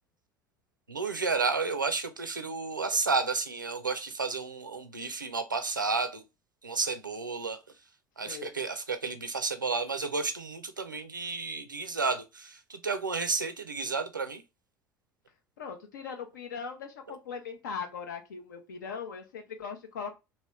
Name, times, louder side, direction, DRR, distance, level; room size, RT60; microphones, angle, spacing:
voice 1, 0.9-6.2 6.6-7.6 8.2-14.4, right 4 dB, 85° right, 0.4 m, -31 dB
voice 2, 8.2-8.6 15.6-20.1, left 6 dB, 70° left, 0.6 m, -39 dB
3.1 x 2.7 x 3.0 m
figure-of-eight pair, 65°, 10 cm